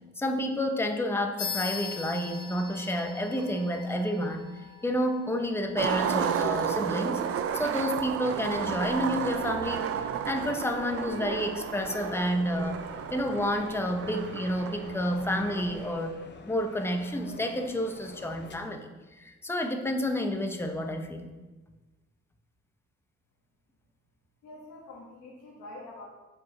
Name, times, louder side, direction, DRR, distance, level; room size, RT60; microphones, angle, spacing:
voice 1, 0.2-4.5 4.8-18.9 19.2-21.3, equal, 10° left, 5 dB, 0.8 m, -30 dB
sound 1, 1.4-11.3, left 6 dB, 55° left, 2.2 m, -43 dB
Skateboard, 5.8-15.9, right 8 dB, 50° right, 0.5 m, -32 dB
sound 2, 10.3-18.6, left 4 dB, 35° left, 0.8 m, -49 dB
voice 2, 24.4-26.1, left 2 dB, 85° left, -5 dB, 1.5 m, -45 dB
7.9 x 4.8 x 4.2 m, 1.2 s
cardioid pair, 90°, 30 cm